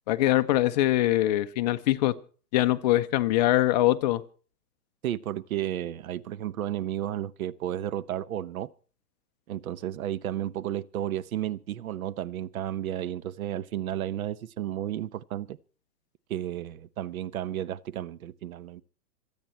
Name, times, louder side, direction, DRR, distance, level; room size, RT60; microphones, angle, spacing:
voice 1, 0.1-2.2 2.5-4.2, left 15 dB, 25° left, 0.7 m, -23 dB
voice 2, 5.0-8.7 9.5-15.6 16.3-18.8, right 12 dB, 55° right, 1.0 m, -32 dB
27.0 x 9.1 x 4.3 m
hypercardioid pair, 140°, 50 cm